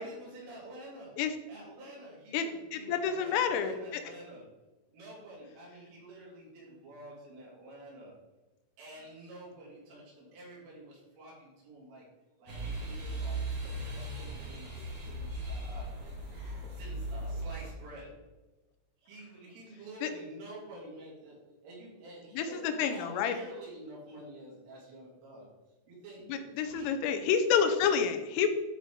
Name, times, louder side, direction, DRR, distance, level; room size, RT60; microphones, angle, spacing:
voice 1, 0.0-1.2 1.5-4.5 4.9-8.2 8.8-12.1 12.4-15.9 16.6-18.2 19.0-25.5 25.9-27.0, right 1 dB, 75° right, -5 dB, 5.4 m, -49 dB
voice 2, 2.7-4.0 20.0-20.1 22.3-23.3 26.3-28.5, left 7 dB, 80° left, 7 dB, 3.2 m, -29 dB
sound 1, 12.5-17.7, right 1 dB, 55° right, 1.6 m, -38 dB
12.0 x 4.4 x 4.6 m, 1.1 s
omnidirectional pair, 5.8 m